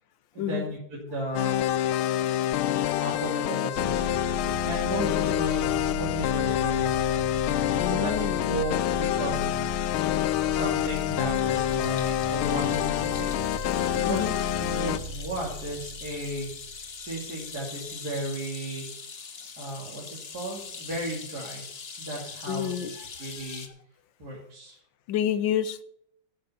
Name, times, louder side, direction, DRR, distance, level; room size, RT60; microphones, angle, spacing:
voice 1, 0.3-1.6 3.0-4.1 4.6-7.2 7.8-9.7 10.5-18.9 19.6-21.6 22.0-22.9 23.2-23.7 24.2-24.8, right 1 dB, 50° right, 3.2 m, -35 dB
sound 1, 1.4-15.0, left 12 dB, 85° left, 1.5 m, -27 dB
sound 2, 3.8-17.2, equal, 35° right, 2.1 m, -37 dB
voice 2, 7.8-8.6 14.1-14.4 22.5-22.9 25.1-25.8, left 10 dB, 70° left, 1.5 m, -29 dB
sound 3, 9.5-23.7, left 5 dB, 35° left, 1.1 m, -43 dB
11.5 x 9.1 x 5.6 m
omnidirectional pair, 2.2 m